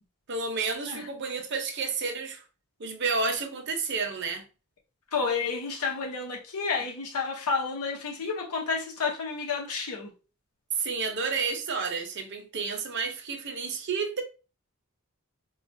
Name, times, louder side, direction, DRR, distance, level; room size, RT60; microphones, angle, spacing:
voice 1, 0.3-2.4 2.8-4.4 10.7-14.2, right 4 dB, 50° right, 0.7 m, -30 dB
voice 2, 5.1-10.1, left 5 dB, 90° left, 0.8 m, -30 dB
4.4 x 2.4 x 2.6 m
head